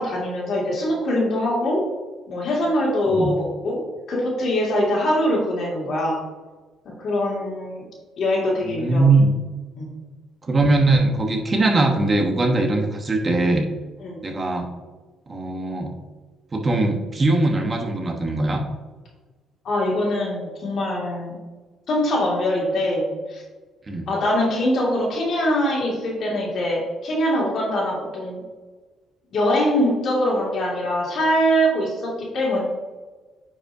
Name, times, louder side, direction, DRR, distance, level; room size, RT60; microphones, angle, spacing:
voice 1, 0.0-1.8 2.3-3.8 4.1-6.2 7.0-7.8 8.2-9.1 9.8-9.9 14.0-14.2 19.6-21.4 21.9-23.4 24.1-28.4 29.3-32.6, equal, 55° left, -4 dB, 2.3 m, -23 dB
voice 2, 8.6-9.3 10.4-13.7 14.2-14.7 15.3-16.0 16.5-18.6 23.9-24.1, right 2 dB, 25° right, 2 dB, 1.1 m, -20 dB
9.5 x 5.3 x 2.7 m, 1.3 s
cardioid pair, 130°, 0 cm